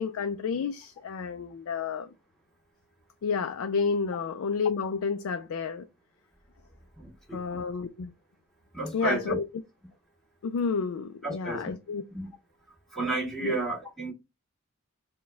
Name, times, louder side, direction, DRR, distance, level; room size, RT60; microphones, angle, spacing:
voice 1, 0.0-2.1 3.2-5.9 7.3-8.1 8.9-9.4 10.4-12.0 13.4-13.5, left 5 dB, 65° left, 0.4 m, -30 dB
voice 2, 7.0-7.4 8.7-9.4 11.2-11.7 12.1-12.3 12.9-14.1, right 3 dB, ahead, 1.8 m, -32 dB
4.2 x 2.2 x 3.3 m
head